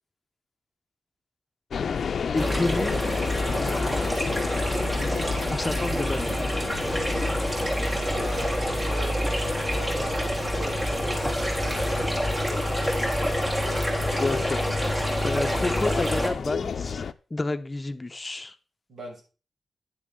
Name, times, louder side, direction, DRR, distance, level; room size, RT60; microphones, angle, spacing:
sound 1, 1.7-17.1, left 6 dB, 75° left, 0.6 m, -33 dB
voice 1, 2.3-3.0 5.5-6.4 14.2-14.6 15.0-17.1 17.3-18.5, left 2 dB, 30° left, 9 dB, 0.8 m, -29 dB
sound 2, 2.4-16.3, equal, 25° right, 3.7 m, -27 dB
voice 2, 8.1-11.2 11.6-13.1 18.9-19.2, right 1 dB, 70° right, -2 dB, 6.6 m, -41 dB
10.5 x 8.9 x 3.7 m, 0.35 s
cardioid pair, 65°, 0 cm